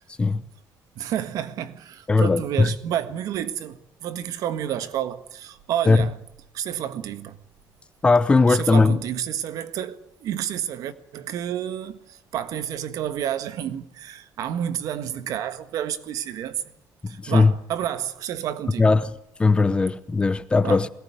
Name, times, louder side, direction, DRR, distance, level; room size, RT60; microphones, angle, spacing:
voice 1, 0.9-6.2 6.5-7.4 8.5-16.6 17.1-18.9 20.6-20.8, right 10 dB, 65° right, 1.6 m, -30 dB
voice 2, 2.1-2.7 5.9-6.1 8.0-9.0 17.0-17.5 18.8-19.1 19.4-20.9, left 3 dB, 15° left, 0.8 m, -19 dB
21.5 x 18.5 x 9.5 m
cardioid pair, 160°, 7 cm